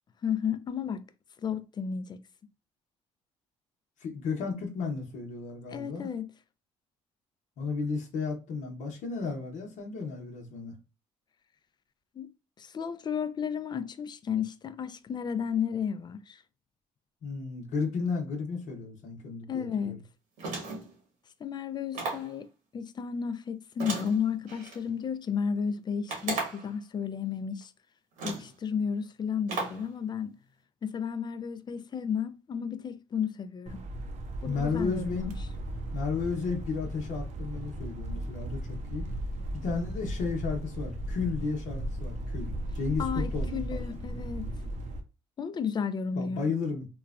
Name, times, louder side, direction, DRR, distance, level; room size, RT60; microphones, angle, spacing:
voice 1, 0.2-1.0 1.4-2.2 5.7-6.3 12.2-12.3 12.6-16.4 19.5-20.0 21.4-27.7 28.2-30.4 30.8-33.8 34.4-35.3 43.0-44.5 45.4-46.5, left 7 dB, 35° left, 0.4 m, -33 dB
voice 2, 4.0-6.1 7.6-10.7 17.2-20.0 34.4-35.3 35.9-39.1 39.5-43.8 46.2-46.9, left 4 dB, 65° left, 0.8 m, -33 dB
sound 1, 20.4-20.9 21.9-22.3 23.8-24.8 26.1-26.7 27.6-27.7 28.2-28.5 29.5-29.9, right 3 dB, 85° right, 1.2 m, -35 dB
sound 2, 33.7-45.0, right 1 dB, 65° right, 0.6 m, -36 dB
3.0 x 2.2 x 2.3 m
supercardioid pair, 80°, 13 cm